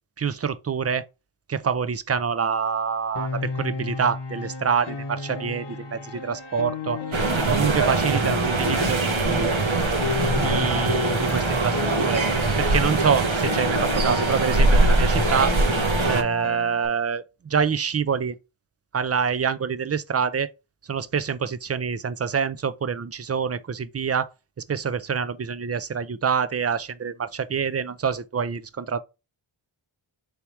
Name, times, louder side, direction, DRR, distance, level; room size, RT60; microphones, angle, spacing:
voice 1, 0.2-1.1 1.5-9.5 10.3-12.2 12.6-15.5 16.1-18.4 18.9-20.5 20.9-24.3 24.7-29.0, right 6 dB, 30° right, 0.4 m, -26 dB
Piano, 3.2-16.9, left 4 dB, 55° left, 0.8 m, -33 dB
sound 1, 7.1-16.2, right 2 dB, 70° right, 1.0 m, -22 dB
3.5 x 2.8 x 4.4 m
cardioid pair, 40°, 49 cm